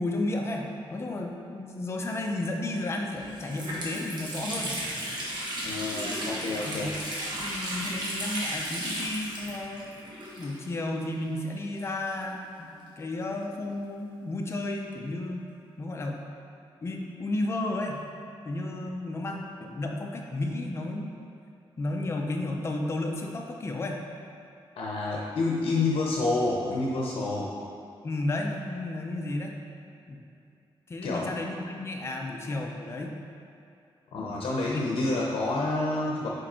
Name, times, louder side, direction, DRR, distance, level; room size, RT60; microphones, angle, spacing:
voice 1, 0.0-4.8 6.7-7.0 7.4-9.8 10.4-12.7 13.0-15.4 15.8-16.2 16.8-18.0 18.4-21.1 21.8-24.0 28.0-29.6 30.1-30.2 30.9-33.1, left 2 dB, 30° left, 1 dB, 0.5 m, -32 dB
Water tap faucet, 2.7-2.8 3.2-10.9 11.1-11.2 12.1-13.6, right 1 dB, 50° right, 1.2 m, -35 dB
voice 2, 5.6-6.9 24.8-27.5 31.0-31.3 34.1-36.3, left 2 dB, 80° left, -3 dB, 0.7 m, -28 dB
5.1 x 4.5 x 4.3 m, 2.6 s
wide cardioid pair, 160°, 9 cm